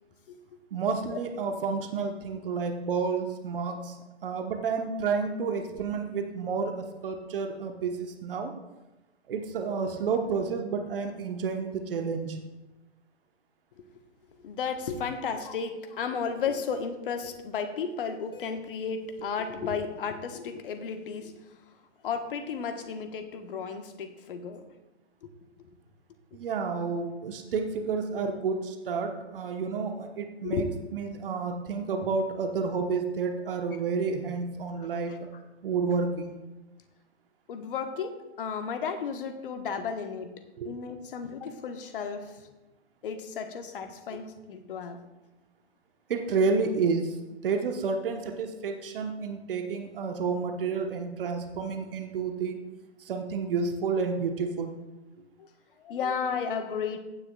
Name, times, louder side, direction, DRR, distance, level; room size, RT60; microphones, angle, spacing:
voice 1, 0.7-8.5 9.3-12.4 26.3-30.6 30.9-35.1 35.6-36.4 40.6-40.7 46.1-47.2 47.4-52.6 53.0-54.7, right 5 dB, 50° right, 4 dB, 1.2 m, -30 dB
voice 2, 14.4-21.3 22.0-24.6 26.8-26.9 30.4-30.7 34.8-34.9 37.5-40.3 40.6-42.3 43.0-45.0 55.4-55.5 55.8-57.0, left 6 dB, 50° left, 7 dB, 1.3 m, -33 dB
15.0 x 9.6 x 2.4 m, 1.1 s
figure-of-eight pair, 120°, 34 cm